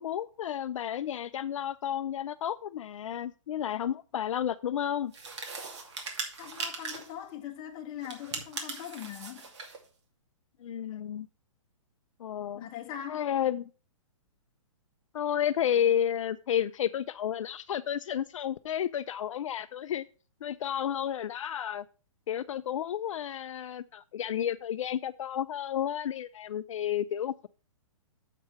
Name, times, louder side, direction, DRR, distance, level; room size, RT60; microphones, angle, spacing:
voice 1, 0.0-5.1 10.6-11.3 12.2-12.7 13.1-13.7 15.1-20.1 20.4-21.8 22.3-27.5, left 10 dB, 70° left, 0.5 m, -31 dB
sound 1, 5.1-7.2 8.0-9.8, right 4 dB, 55° right, 2.4 m, -39 dB
voice 2, 6.4-9.5 12.5-13.3, left 10 dB, 25° left, 1.4 m, -41 dB
7.4 x 5.4 x 5.8 m
hypercardioid pair, 155°, 17 cm